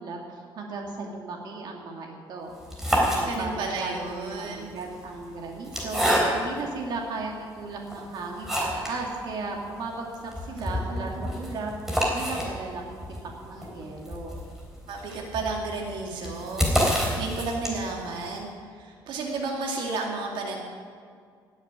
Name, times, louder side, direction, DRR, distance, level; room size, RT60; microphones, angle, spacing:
voice 1, 0.0-2.5 3.2-11.7 12.1-13.0 13.4-14.4, right 3 dB, 55° right, 0 dB, 2.3 m, -36 dB
sound 1, 2.5-3.8 4.6-6.7 7.3-7.4 7.9-9.0 9.3-9.4 9.7-9.8 10.1-18.0, equal, 5° right, 3.6 m, -28 dB
voice 2, 3.3-4.7 10.5-11.5 14.9-20.6, right 3 dB, 75° right, 0 dB, 2.3 m, -33 dB
18.0 x 7.2 x 9.4 m, 2.1 s
cardioid pair, 145°, 8 cm